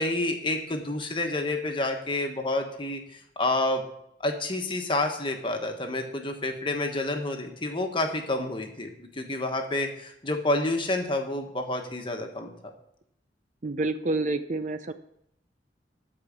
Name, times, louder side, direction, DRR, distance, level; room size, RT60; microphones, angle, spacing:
voice 1, 0.0-3.8 4.2-12.5, left 2 dB, 25° left, 3 dB, 1.4 m, -29 dB
voice 2, 13.6-14.9, right 2 dB, 40° right, 10 dB, 0.6 m, -28 dB
13.5 x 5.0 x 7.3 m, 0.74 s
head